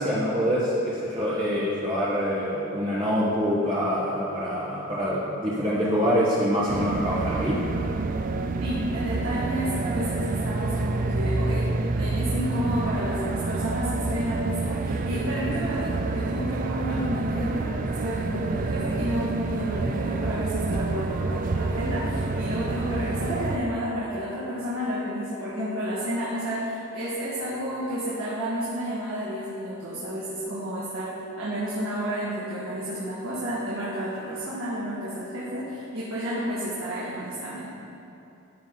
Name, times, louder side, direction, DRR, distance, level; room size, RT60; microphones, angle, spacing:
voice 1, 0.0-7.6, equal, 25° right, -8 dB, 1.2 m, -25 dB
sound 1, 6.7-23.6, right 3 dB, 40° right, 0.4 m, -28 dB
voice 2, 8.6-11.7 11.9-37.7, equal, 75° right, -8 dB, 1.8 m, -31 dB
14.0 x 6.1 x 3.9 m, 2.8 s
head